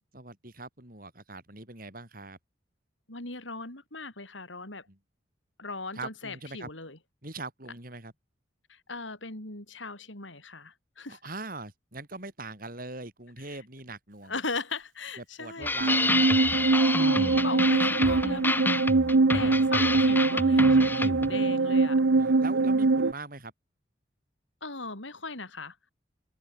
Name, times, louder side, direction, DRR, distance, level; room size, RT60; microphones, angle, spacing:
voice 1, 0.1-2.4 4.9-5.0 5.9-6.7 7.2-8.1 11.1-14.3 15.2-16.3 20.9-21.7 22.2-23.5, right 2 dB, 50° right, 5.9 m, -42 dB
voice 2, 3.1-4.9 5.6-7.0 8.7-11.2 13.4-13.6 14.3-15.7 16.5-18.7 19.2-22.0 24.6-25.9, left 3 dB, 80° left, 6.6 m, -38 dB
sound 1, 15.6-21.3, left 2 dB, 10° left, 1.0 m, -29 dB
sound 2, 15.8-23.1, right 3 dB, 80° right, 0.8 m, -23 dB
head